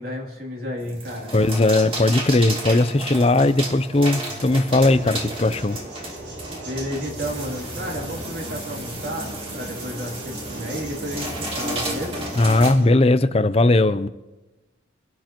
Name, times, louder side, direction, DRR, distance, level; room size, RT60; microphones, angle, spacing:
voice 1, 0.0-1.3 6.6-12.3, equal, 50° right, 3.0 m, -32 dB
sound 1, 0.8-12.7, right 1 dB, 30° right, 2.3 m, -33 dB
voice 2, 1.3-5.8 12.4-14.1, left 2 dB, 30° left, 0.5 m, -18 dB
sound 2, 4.5-12.9, right 1 dB, 70° right, 5.3 m, -37 dB
24.0 x 12.0 x 3.0 m
head